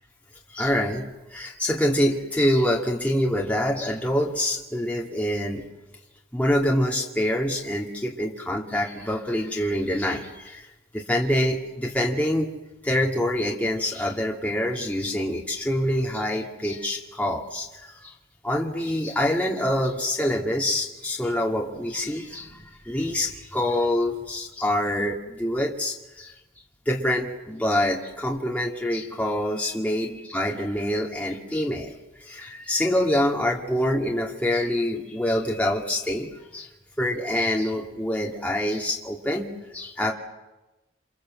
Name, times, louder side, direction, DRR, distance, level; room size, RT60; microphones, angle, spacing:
voice 1, 0.5-5.7 6.3-10.7 10.9-12.5 12.8-18.2 18.4-26.3 26.9-36.7 37.0-40.1, left 1 dB, 10° left, -2 dB, 2.4 m, -26 dB
28.0 x 25.5 x 7.7 m, 1.0 s
head